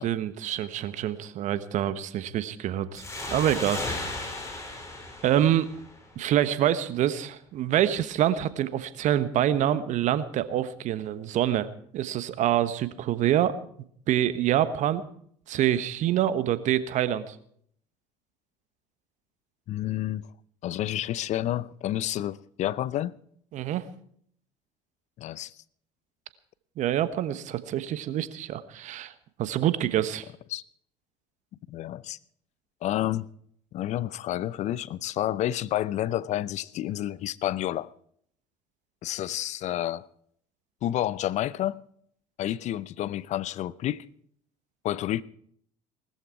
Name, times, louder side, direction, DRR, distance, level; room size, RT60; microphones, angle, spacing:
voice 1, 0.0-3.0 3.3-3.8 5.2-5.7 6.2-11.7 11.9-13.5 14.1-15.0 15.5-17.3 23.5-23.9 26.8-29.1 29.4-30.2, right 11 dB, 55° right, 1.2 m, -26 dB
sound 1, 2.9-6.3, left 2 dB, 20° left, 5.8 m, -35 dB
voice 2, 19.7-20.3 20.6-23.2 25.2-25.5 30.5-30.6 31.7-32.2 32.8-33.3 33.7-37.9 39.0-40.1 40.8-41.8 42.4-44.0 44.8-45.2, left 13 dB, 50° left, 0.6 m, -30 dB
19.0 x 13.5 x 4.6 m
hypercardioid pair, 65°, 15 cm